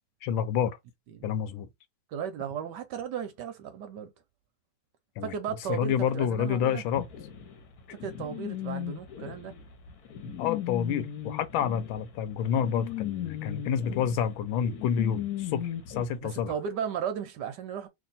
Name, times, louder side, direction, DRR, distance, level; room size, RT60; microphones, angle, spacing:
voice 1, 0.2-0.8 1.2-1.7 5.2-5.3 5.7-7.0 10.4-16.5, left 8 dB, 85° left, 1.4 m, -28 dB
voice 2, 2.1-4.1 5.2-6.8 7.9-9.6 16.2-17.9, right 8 dB, 70° right, 1.1 m, -35 dB
sound 1, 7.0-16.1, left 11 dB, 60° left, 1.2 m, -37 dB
3.2 x 2.7 x 3.9 m
omnidirectional pair, 2.2 m